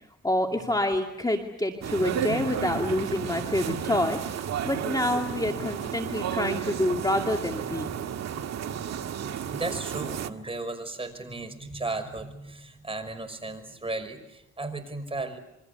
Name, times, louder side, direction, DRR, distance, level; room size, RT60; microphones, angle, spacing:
voice 1, 0.2-7.9, left 1 dB, 15° left, 3 dB, 2.4 m, -27 dB
sound 1, 1.8-10.3, right 8 dB, 60° right, 1.7 m, -32 dB
voice 2, 9.5-15.4, right 2 dB, 20° right, 7 dB, 5.7 m, -35 dB
28.0 x 24.5 x 6.9 m, 0.85 s
cardioid pair, 90°, 30 cm